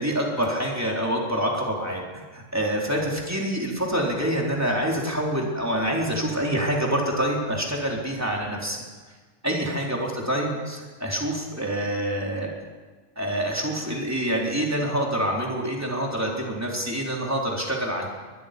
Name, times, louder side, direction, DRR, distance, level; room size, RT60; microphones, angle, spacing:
voice 1, 0.0-8.8 9.4-12.5 13.2-18.1, right 1 dB, 10° right, -2 dB, 4.1 m, -26 dB
22.5 x 22.0 x 5.4 m, 1.4 s
omnidirectional pair, 1.3 m